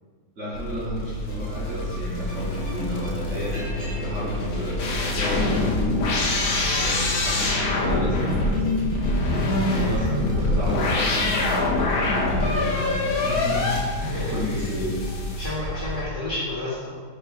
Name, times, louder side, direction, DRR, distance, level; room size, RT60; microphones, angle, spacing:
voice 1, 0.4-3.6 4.0-6.1 6.3-8.8 9.8-13.7 14.3-15.0, left 1 dB, 55° right, -7 dB, 1.2 m, -32 dB
sound 1, 0.5-16.1, left 2 dB, 85° left, 1.2 m, -25 dB
sound 2, 1.2-16.0, left 1 dB, 60° left, 1.9 m, -45 dB
Liquid, 3.5-4.1 4.4-5.3 6.0-6.1 6.4-6.5 6.7-7.0 7.3-7.7 8.2-12.0 12.5-13.5 13.9-14.1 14.3-14.8, right 1 dB, 75° right, 2.2 m, -46 dB
voice 2, 9.7-10.1 14.0-14.3 15.3-16.9, left 2 dB, 35° left, -10 dB, 1.4 m, -31 dB
5.1 x 4.3 x 2.3 m, 1.6 s
omnidirectional pair, 1.6 m